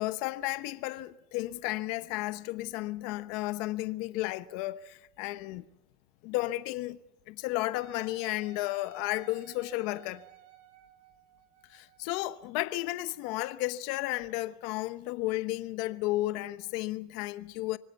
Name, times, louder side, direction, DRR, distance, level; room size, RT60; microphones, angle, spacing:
voice 1, 0.0-5.6 6.2-7.0 7.3-10.2 11.7-17.8, left 18 dB, 65° left, 0.9 m, -33 dB
Wind instrument woodwind instrument, 7.8-13.4, right 15 dB, 70° right, 3.5 m, -56 dB
25.5 x 18.0 x 7.0 m
supercardioid pair, 130°, 0 cm